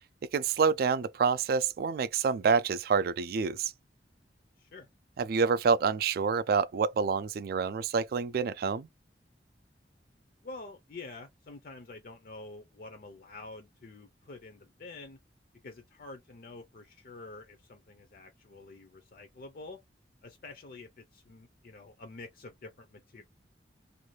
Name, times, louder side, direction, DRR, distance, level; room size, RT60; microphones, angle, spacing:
voice 1, 0.3-3.7 5.2-8.9, right 5 dB, 55° right, 0.3 m, -27 dB
voice 2, 4.6-4.9 10.4-15.2 15.6-19.8 20.2-23.2, left 3 dB, 50° left, 0.5 m, -47 dB
2.6 x 2.3 x 3.0 m
head